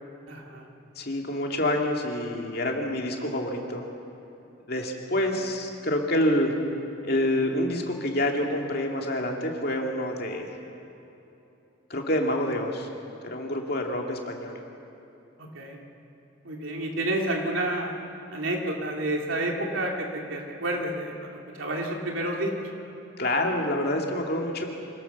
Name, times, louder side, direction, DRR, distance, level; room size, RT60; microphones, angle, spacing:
voice 1, 0.3-0.7 5.2-5.3 15.4-15.8 16.4-18.0 18.3-22.7, right 1 dB, 75° right, 0 dB, 2.9 m, -30 dB
voice 2, 1.0-3.8 4.7-6.5 7.0-10.5 11.9-12.9 13.2-14.6 23.2-24.7, left 1 dB, 50° left, 1 dB, 2.3 m, -27 dB
26.0 x 18.5 x 7.0 m, 3.0 s
head